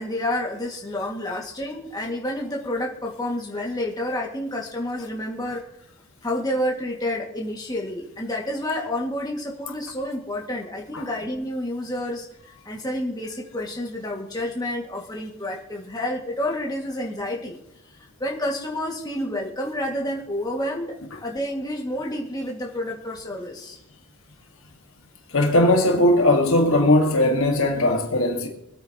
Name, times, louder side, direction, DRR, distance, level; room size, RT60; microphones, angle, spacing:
voice 1, 0.0-5.6 6.2-17.6 18.0-21.0 21.2-23.8, left 1 dB, 15° left, 2.0 m, -29 dB
voice 2, 25.3-28.5, left 1 dB, 65° left, 1.8 m, -19 dB
24.5 x 8.9 x 2.9 m
head